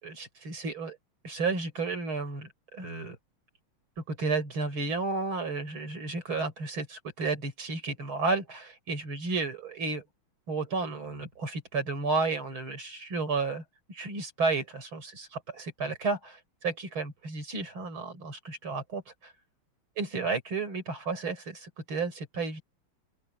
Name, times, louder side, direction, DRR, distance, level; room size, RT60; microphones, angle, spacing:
voice 1, 0.0-1.0 1.2-3.2 4.1-10.0 10.5-13.6 13.9-19.3 20.0-22.6, right 4 dB, 70° right, 6.1 m, -32 dB
open air
omnidirectional pair, 2.3 m